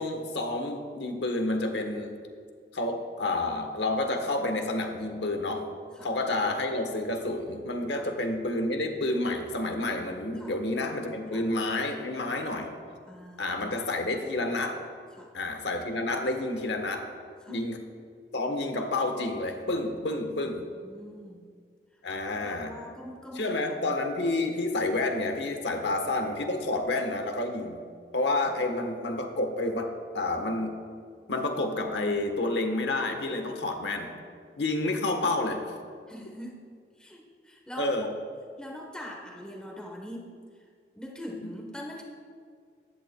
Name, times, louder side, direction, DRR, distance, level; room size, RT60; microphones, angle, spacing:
voice 1, 0.0-2.1 2.7-5.7 6.0-12.7 13.4-14.8 15.3-17.1 17.5-17.8 18.3-20.7 22.0-22.7 23.3-27.8 28.1-30.8 31.3-34.1 34.6-35.6 37.8-38.1 41.3-41.5, left 2 dB, 85° left, 5 dB, 1.1 m, -29 dB
voice 2, 13.1-13.6 15.2-15.3 17.4-17.6 20.4-20.5 20.8-21.4 22.1-24.0 36.1-36.6 37.0-37.9 38.6-40.4 40.9-42.0, equal, 5° left, 0 dB, 0.9 m, -43 dB
15.0 x 11.0 x 2.2 m, 2.1 s
head